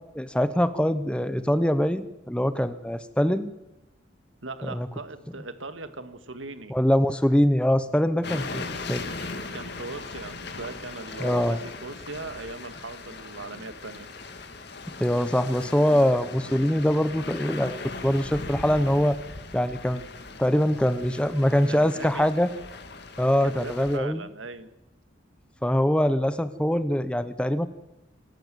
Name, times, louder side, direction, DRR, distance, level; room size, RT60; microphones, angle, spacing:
voice 1, 0.1-3.5 4.6-4.9 6.7-9.0 11.2-11.6 15.0-17.8 18.0-19.2 19.5-20.0 20.4-22.5 23.2-24.2 25.6-27.7, equal, 5° left, 13 dB, 0.8 m, -23 dB
voice 2, 4.4-6.8 9.5-14.1 21.7-22.3 23.4-24.7, right 3 dB, 85° right, 10 dB, 1.9 m, -39 dB
sound 1, 8.2-24.0, left 3 dB, 60° left, 2.1 m, -39 dB
26.5 x 14.5 x 7.7 m, 0.96 s
head